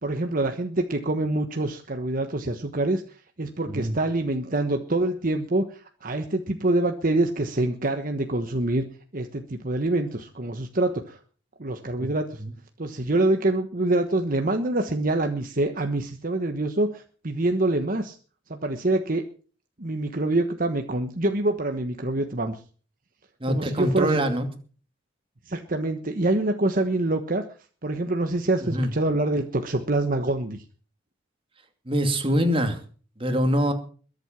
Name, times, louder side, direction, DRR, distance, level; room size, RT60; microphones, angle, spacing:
voice 1, 0.0-3.0 3.4-8.8 9.1-11.2 11.6-12.4 12.8-18.2 18.5-19.2 19.8-22.6 23.5-24.3 25.5-27.4 27.8-30.6, right 2 dB, 50° right, 6 dB, 1.3 m, -25 dB
voice 2, 3.7-4.0 12.0-12.1 12.4-12.5 23.4-24.5 28.6-28.9 31.9-32.8 33.2-33.7, equal, 30° right, 6 dB, 2.5 m, -24 dB
22.0 x 8.1 x 6.0 m, 0.41 s
head